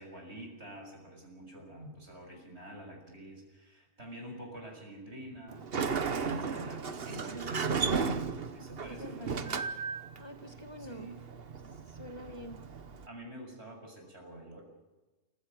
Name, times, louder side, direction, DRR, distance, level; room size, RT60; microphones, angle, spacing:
voice 1, 0.0-5.7 6.0-9.5 10.8-11.1 13.1-14.6, right 1 dB, 75° right, 1 dB, 6.7 m, -46 dB
Sliding door, 5.5-13.1, right 5 dB, 60° right, 1.3 m, -35 dB
voice 2, 8.9-9.6 10.2-11.1 11.7-12.6, equal, 25° left, 6 dB, 1.2 m, -47 dB
28.5 x 15.5 x 7.7 m, 1.2 s
omnidirectional pair, 1.1 m